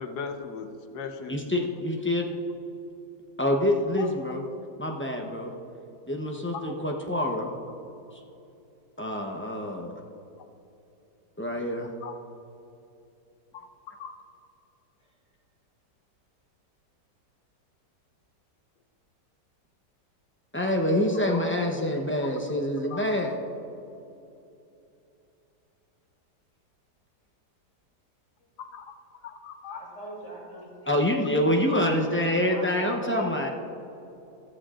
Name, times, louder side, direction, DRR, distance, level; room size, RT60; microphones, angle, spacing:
voice 1, 0.0-1.4 4.0-4.1 6.5-6.7 12.0-12.1 13.5-13.7 14.0-14.2 21.3-21.4 22.2-22.3 22.9-23.0 28.6-29.0 29.2-29.8, left 5 dB, 70° left, 6 dB, 1.3 m, -38 dB
voice 2, 1.3-2.3 3.4-4.4 4.8-5.5 6.1-7.5 9.0-9.9 11.4-11.9 20.5-23.3 30.9-33.5, left 1 dB, 15° left, 1 dB, 0.4 m, -26 dB
voice 3, 29.7-31.1 32.5-33.4, right 1 dB, 50° left, -4 dB, 3.6 m, -42 dB
14.5 x 14.5 x 2.5 m, 2.8 s
omnidirectional pair, 1.8 m